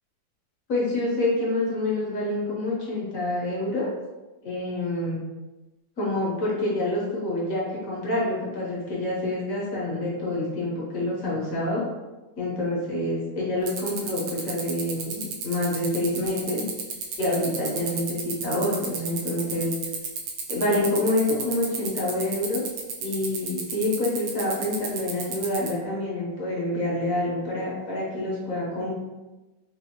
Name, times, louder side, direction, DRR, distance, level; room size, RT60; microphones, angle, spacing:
voice 1, 0.7-3.9 4.4-5.2 6.0-11.8 12.4-16.6 17.2-19.7 20.5-22.6 23.0-29.0, left 1 dB, 50° left, -5 dB, 1.2 m, -27 dB
sound 1, 13.7-25.7, right 6 dB, 70° right, 1.1 m, -31 dB
4.2 x 2.6 x 2.8 m, 1.1 s
omnidirectional pair, 2.2 m